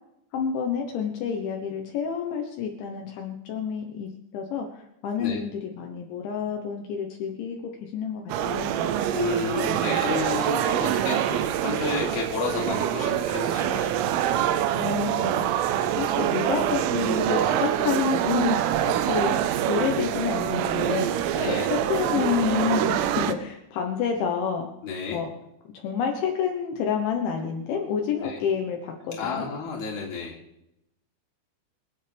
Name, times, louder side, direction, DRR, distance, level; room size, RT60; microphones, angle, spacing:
voice 1, 0.3-8.8 14.8-19.4 19.7-21.1 21.5-24.7 25.1-25.3 25.7-29.5, left 7 dB, 75° left, 2 dB, 3.4 m, -29 dB
sound 1, 8.3-23.3, right 10 dB, 90° right, 3.4 m, -25 dB
voice 2, 9.1-13.9 21.3-21.7 24.8-25.2 28.2-28.4 29.1-30.4, left 5 dB, 35° left, -2 dB, 3.6 m, -31 dB
27.0 x 9.2 x 3.5 m, 0.83 s
omnidirectional pair, 5.7 m